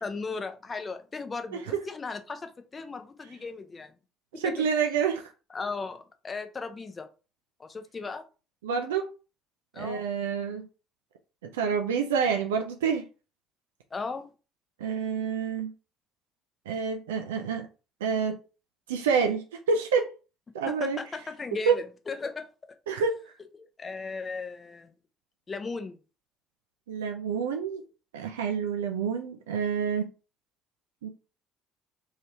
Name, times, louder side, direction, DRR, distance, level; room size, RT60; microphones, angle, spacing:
voice 1, 0.0-3.9 4.4-4.6 5.5-7.1 7.6-8.2 9.7-10.1 13.9-14.3 20.7-22.5 22.9-23.0 23.5-24.9 25.5-26.0, left 4 dB, 30° left, 0.6 m, -36 dB
voice 2, 4.3-5.3 8.6-9.1 9.8-10.7 11.4-13.0 14.8-15.7 16.7-17.7 18.0-18.4 18.9-20.1 20.5-21.0 21.7-21.8 22.9-23.2 26.9-27.8 28.1-30.1 31.0-31.1, right 6 dB, 75° right, 0.3 m, -28 dB
3.2 x 2.8 x 2.8 m
figure-of-eight pair, 55°, 0 cm